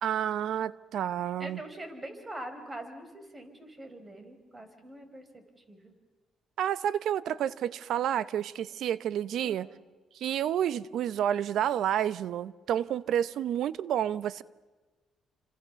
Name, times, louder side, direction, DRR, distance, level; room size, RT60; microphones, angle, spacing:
voice 1, 0.0-1.6 6.6-9.7 10.1-14.4, right 10 dB, 75° right, 0.8 m, -30 dB
voice 2, 1.4-5.9 9.4-9.8, right 1 dB, 20° right, 4.5 m, -44 dB
29.5 x 26.5 x 7.0 m
cardioid pair, 90°, 0 cm